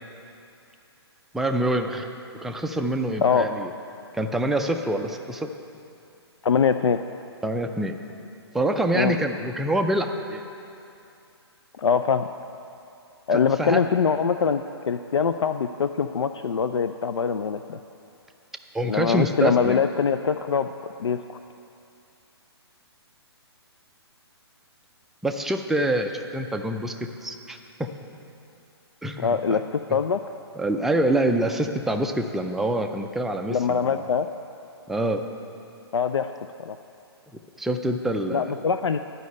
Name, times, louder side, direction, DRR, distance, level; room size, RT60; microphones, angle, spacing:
voice 1, 1.3-2.1 2.4-3.7 4.1-5.5 7.4-8.0 8.5-10.4 13.6-13.8 18.7-19.8 25.2-26.9 27.2-27.6 29.0-29.6 29.9-30.0 30.6-34.0 34.9-35.3 37.6-38.5, right 1 dB, ahead, 4 dB, 0.3 m, -26 dB
voice 2, 6.4-7.0 8.9-9.1 11.8-12.3 13.3-17.8 18.9-20.7 21.0-21.4 29.2-30.2 33.5-34.3 35.9-36.3 36.6-36.8 38.3-39.0, left 6 dB, 90° left, 9 dB, 0.4 m, -23 dB
11.5 x 5.4 x 8.4 m, 2.7 s
hypercardioid pair, 140°, 14 cm